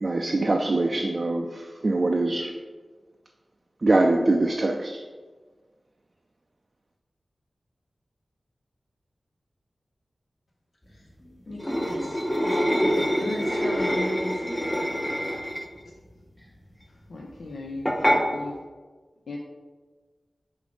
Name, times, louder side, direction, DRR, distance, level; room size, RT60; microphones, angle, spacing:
voice 1, 0.0-2.5 3.8-5.0, right 2 dB, 50° right, 2 dB, 0.3 m, -23 dB
voice 2, 10.9-14.5, left 1 dB, 65° left, -4 dB, 1.1 m, -37 dB
sound 1, 11.6-15.8 17.9-18.2, equal, 10° left, 0.5 m, -25 dB
voice 3, 17.1-18.0 18.3-18.7 19.3-19.4, left 2 dB, 90° left, 0 dB, 0.3 m, -37 dB
4.7 x 2.5 x 3.4 m, 1.4 s
cardioid pair, 55°, 0 cm